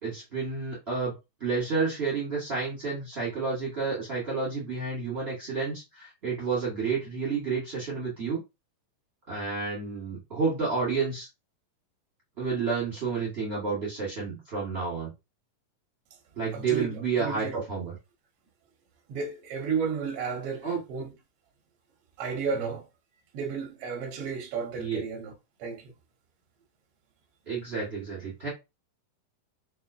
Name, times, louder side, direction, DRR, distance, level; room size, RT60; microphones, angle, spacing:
voice 1, 0.0-1.1 1.4-8.4 9.3-11.3 12.4-15.1 16.4-17.9 20.6-20.8 24.8-25.0 27.5-28.5, right 4 dB, 55° right, 0.6 m, -30 dB
voice 2, 16.5-17.6 19.1-21.1 22.2-22.8 23.3-25.3 25.6-25.8, right 5 dB, 80° right, 1.3 m, -33 dB
5.5 x 2.3 x 2.6 m
omnidirectional pair, 3.9 m